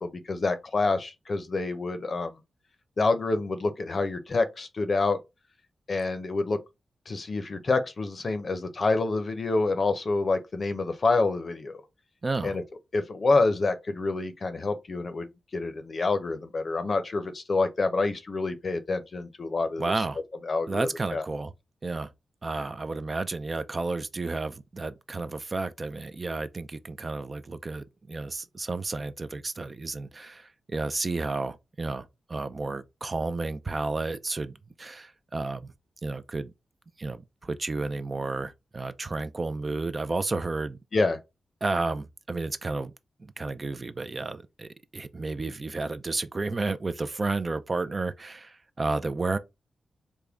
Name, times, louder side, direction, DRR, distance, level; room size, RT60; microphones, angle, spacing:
voice 1, 0.0-2.3 3.0-5.2 5.9-6.6 7.1-11.8 12.4-12.6 12.9-15.3 15.5-19.9 20.4-21.2 40.9-41.2, left 3 dB, 50° left, 0.6 m, -27 dB
voice 2, 12.2-12.6 19.8-20.2 20.7-21.5 21.8-22.1 22.4-35.7 36.0-36.5 37.0-40.8 41.6-42.9 43.4-49.4, right 3 dB, 40° right, 0.4 m, -32 dB
3.5 x 2.1 x 3.5 m
cardioid pair, 60°, 0 cm